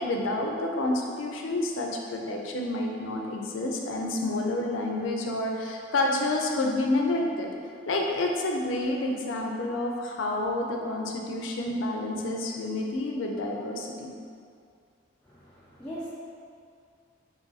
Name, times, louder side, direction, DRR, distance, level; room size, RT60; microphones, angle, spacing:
voice 1, 0.0-7.5 7.9-14.2, left 2 dB, 80° left, 1 dB, 0.4 m, -29 dB
voice 2, 15.2-16.1, equal, 5° left, -12 dB, 0.4 m, -40 dB
3.0 x 2.5 x 3.9 m, 2.3 s
head